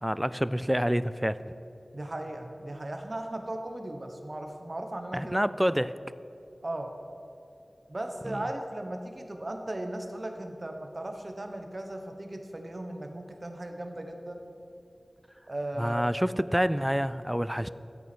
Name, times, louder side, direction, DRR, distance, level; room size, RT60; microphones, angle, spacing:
voice 1, 0.0-1.4 5.1-5.9 8.2-8.4 15.8-17.7, equal, 5° right, 15 dB, 0.4 m, -27 dB
voice 2, 1.9-5.4 6.6-6.9 7.9-14.4 15.5-16.0, right 1 dB, 50° right, 4 dB, 1.2 m, -37 dB
12.5 x 8.3 x 6.2 m, 2.7 s
wide cardioid pair, 45°, 0 cm